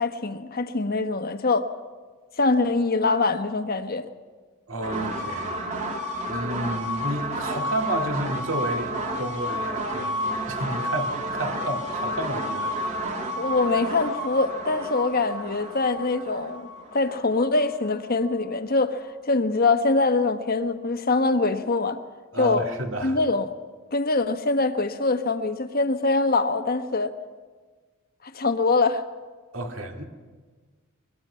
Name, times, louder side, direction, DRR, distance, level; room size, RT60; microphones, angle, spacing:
voice 1, 0.0-1.7 2.4-4.1 13.3-22.0 22.4-22.6 23.0-23.4 23.9-27.1 28.3-29.0, left 3 dB, 45° left, 8 dB, 1.2 m, -23 dB
voice 2, 4.7-5.6 6.3-12.7 22.3-23.2 29.5-30.0, right 1 dB, 65° right, 4 dB, 2.3 m, -31 dB
sound 1, 4.8-18.4, equal, 35° right, 2.1 m, -31 dB
23.0 x 21.5 x 5.7 m, 1.4 s
head